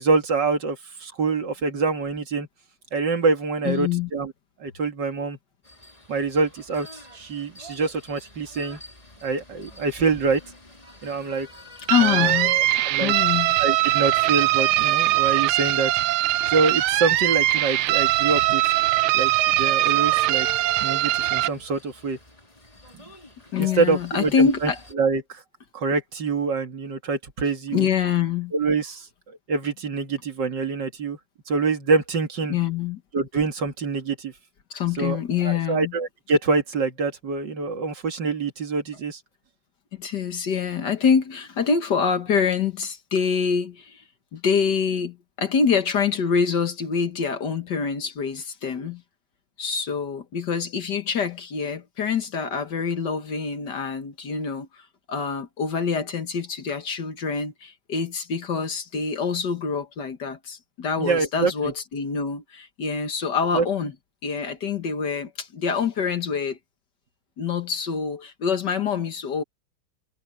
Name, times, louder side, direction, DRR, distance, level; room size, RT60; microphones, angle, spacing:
voice 1, 0.0-2.5 2.9-4.3 4.6-5.4 6.1-8.8 9.2-10.4 11.0-11.5 12.0-13.1 13.6-15.9 16.5-18.6 19.1-20.5 20.8-22.2 22.9-23.1 23.6-24.7 25.0-25.4 25.7-27.9 28.5-31.2 31.5-32.6 33.1-34.3 35.0-35.2 35.4-39.2 61.0-61.7 63.5-63.7, right 4 dB, 55° right, 2.6 m, -25 dB
voice 2, 3.7-4.1 11.9-12.6 13.0-13.6 23.5-24.8 27.7-28.5 32.5-33.0 34.7-35.9 39.9-44.0 44.3-49.0 49.6-63.9 64.2-66.6 67.4-69.4, left 6 dB, 55° left, 1.9 m, -25 dB
sound 1, 5.6-24.9, equal, 15° left, 3.6 m, -47 dB
sound 2, 11.9-21.5, right 16 dB, 80° right, 1.5 m, -21 dB
omnidirectional pair, 2.3 m